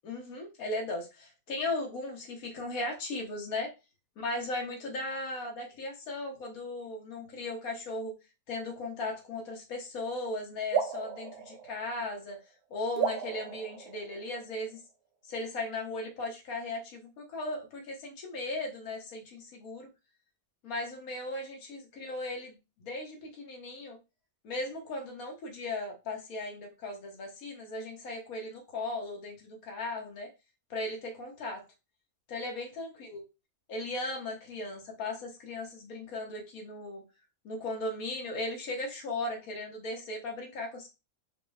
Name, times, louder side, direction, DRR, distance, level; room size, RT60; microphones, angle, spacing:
voice 1, 0.0-3.7 4.2-8.1 8.5-12.4 12.7-14.8 15.2-19.9 20.6-24.0 24.4-30.3 30.7-31.6 32.3-33.2 33.7-37.0 37.4-40.9, left 2 dB, 70° left, 1 dB, 1.6 m, -37 dB
sound 1, 10.7-12.4 13.0-14.7, right 6 dB, 80° right, 1.3 m, -34 dB
5.1 x 2.1 x 3.4 m, 0.26 s
omnidirectional pair, 1.6 m